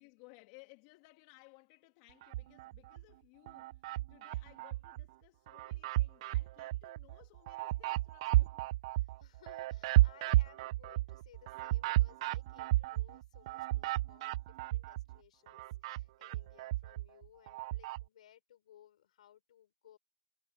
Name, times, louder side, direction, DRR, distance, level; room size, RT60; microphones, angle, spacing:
voice 1, 0.0-3.8 4.1-8.7, left 25 dB, 45° left, 2.0 m, -61 dB
sound 1, 2.2-3.0 3.5-5.1 5.5-15.2 15.5-18.0, right 17 dB, 50° right, 0.3 m, -33 dB
voice 2, 9.0-20.0, left 11 dB, 70° left, 5.7 m, -62 dB
hypercardioid pair, 140°, 4 cm